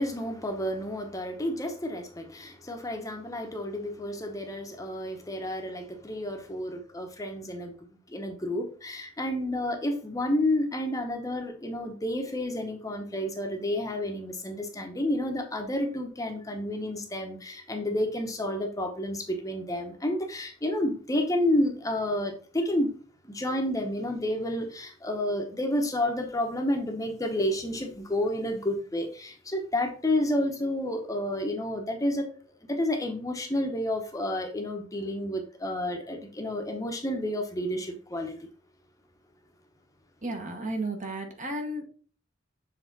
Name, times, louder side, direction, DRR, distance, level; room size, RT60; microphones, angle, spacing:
voice 1, 0.0-7.7 8.1-22.9 23.2-32.3 32.7-38.4, left 1 dB, 20° left, 0.9 m, -30 dB
voice 2, 40.2-41.8, right 1 dB, 40° right, 1.2 m, -33 dB
7.1 x 3.4 x 4.0 m
head